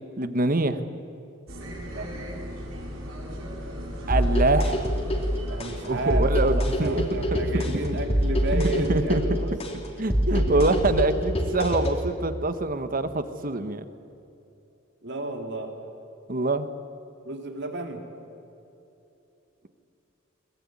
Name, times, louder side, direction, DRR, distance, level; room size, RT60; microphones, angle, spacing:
voice 1, 0.2-0.8 4.1-4.9 5.9-7.0 8.5-9.2 10.0-13.8 16.3-16.7, right 2 dB, 45° right, 11 dB, 1.2 m, -25 dB
sound 1, 1.5-9.2, equal, 85° right, 7.6 m, -39 dB
sound 2, 4.1-12.1, equal, 30° left, 3.0 m, -25 dB
voice 2, 5.5-9.6 10.3-10.9 15.0-15.8 17.2-18.0, right 2 dB, 60° right, 4 dB, 3.1 m, -32 dB
22.5 x 20.0 x 9.6 m, 2.8 s
head